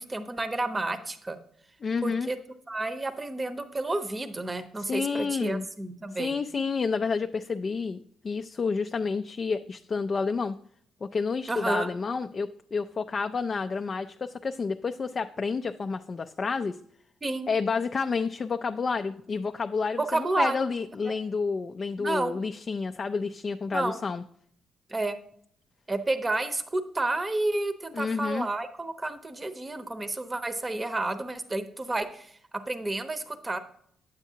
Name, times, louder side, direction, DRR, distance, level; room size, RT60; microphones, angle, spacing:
voice 1, 0.0-1.4 2.0-2.4 2.7-6.3 11.5-11.9 17.2-17.5 20.0-20.6 21.0-21.1 22.0-22.4 23.7-24.0 24.9-25.2 25.9-32.4 32.7-33.6, right 2 dB, 20° right, 10 dB, 0.8 m, -30 dB
voice 2, 1.8-2.3 4.8-5.7 6.2-10.6 11.0-16.8 17.5-24.2 27.9-28.5, left 4 dB, 40° left, 7 dB, 0.4 m, -30 dB
9.0 x 8.1 x 2.8 m, 0.64 s
cardioid pair, 90°, 0 cm